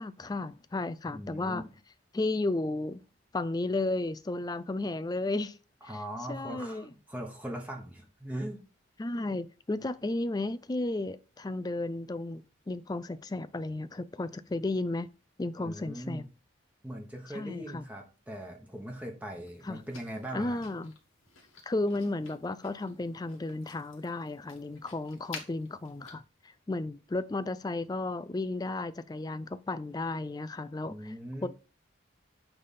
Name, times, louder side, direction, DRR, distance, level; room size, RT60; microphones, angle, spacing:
voice 1, 0.0-1.6 2.1-3.0 3.3-5.6 6.3-6.9 9.0-15.1 15.4-16.2 17.3-17.8 19.6-19.8 20.3-20.9 21.7-26.2 26.7-31.1 31.4-31.5, left 2 dB, 20° left, 0.3 m, -33 dB
voice 2, 1.1-1.7 5.9-8.6 15.6-16.3 16.8-20.6 30.9-31.5, right 1 dB, 10° right, 1.1 m, -40 dB
sound 1, 19.5-26.2, left 4 dB, 90° left, 1.9 m, -51 dB
8.8 x 3.4 x 4.2 m
head